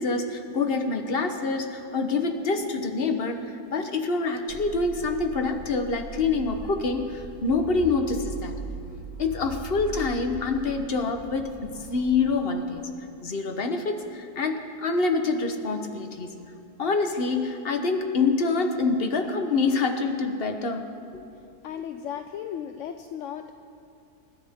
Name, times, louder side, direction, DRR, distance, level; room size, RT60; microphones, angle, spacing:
voice 1, 0.0-3.4 3.7-8.5 9.2-12.8 13.2-16.3 16.8-20.8, left 4 dB, 40° left, 5 dB, 1.2 m, -26 dB
sound 1, 4.5-12.3, right 2 dB, 35° right, 2.6 m, -40 dB
voice 2, 21.6-23.5, left 9 dB, 65° left, 7 dB, 0.8 m, -35 dB
28.5 x 12.5 x 3.7 m, 2.6 s
omnidirectional pair, 1.7 m